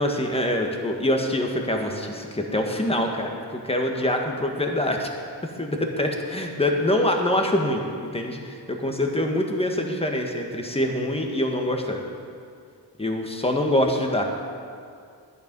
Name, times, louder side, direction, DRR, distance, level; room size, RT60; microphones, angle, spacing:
voice 1, 0.0-5.1 5.6-12.0 13.0-14.2, left 1 dB, 15° left, 2 dB, 1.6 m, -25 dB
11.5 x 9.9 x 5.4 m, 2.3 s
cardioid pair, 80°, 43 cm